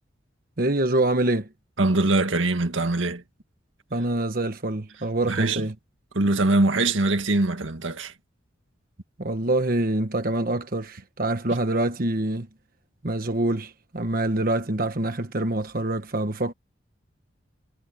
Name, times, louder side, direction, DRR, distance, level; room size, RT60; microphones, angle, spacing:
voice 1, 0.6-1.5 3.9-5.7 9.2-12.5 13.0-16.5, right 2 dB, 50° right, 1.3 m, -25 dB
voice 2, 1.8-3.2 5.3-5.6 6.1-8.1, right 2 dB, 85° right, 1.9 m, -22 dB
head